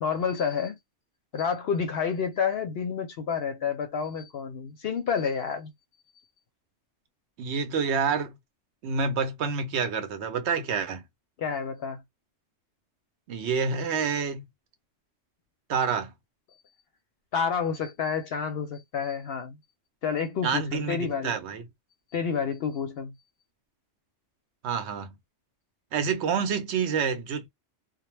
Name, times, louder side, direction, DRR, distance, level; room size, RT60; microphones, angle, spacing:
voice 1, 0.0-0.8 1.3-5.7 11.4-12.0 17.3-19.6 20.0-21.4 22.1-23.1, left 6 dB, 65° left, 0.7 m, -29 dB
voice 2, 7.4-8.3 8.8-11.0 13.3-14.4 15.7-16.1 20.4-21.6 24.6-25.2 25.9-27.5, right 5 dB, 70° right, 0.8 m, -28 dB
2.1 x 2.1 x 3.1 m
omnidirectional pair, 1.3 m